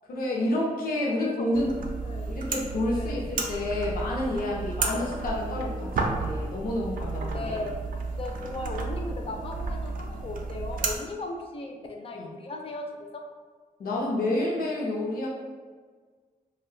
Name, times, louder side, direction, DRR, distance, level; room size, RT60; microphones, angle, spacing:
voice 1, 0.1-1.7 2.3-7.7 12.1-12.3 13.8-15.3, left 1 dB, 85° left, -3 dB, 0.6 m, -29 dB
voice 2, 1.0-1.6 2.0-2.3 2.9-3.3 4.8-5.1 7.3-7.8 8.2-13.2, left 2 dB, 40° left, 3 dB, 0.4 m, -36 dB
sound 1, 1.5-11.0, right 3 dB, 70° right, 0.4 m, -32 dB
2.5 x 2.1 x 3.7 m, 1.5 s
wide cardioid pair, 145°, 15 cm